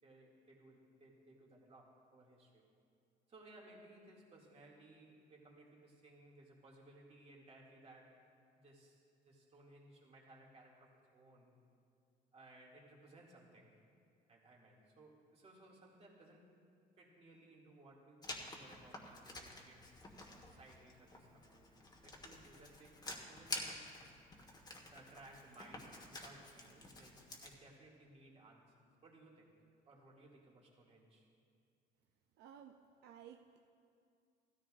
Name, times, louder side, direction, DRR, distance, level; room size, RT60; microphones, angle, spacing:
voice 1, 0.0-2.6 3.3-8.2 8.5-11.5 12.3-13.8 14.3-16.6 17.0-19.9 20.4-23.9 24.8-29.5 29.9-31.2, right 2 dB, 35° right, -3 dB, 2.3 m, -61 dB
Writing, 18.2-27.5, left 2 dB, 25° left, 1.5 m, -50 dB
voice 2, 32.4-33.7, right 8 dB, 80° right, 4 dB, 0.5 m, -57 dB
16.0 x 13.5 x 2.5 m, 2.4 s
cardioid pair, 110°, 17 cm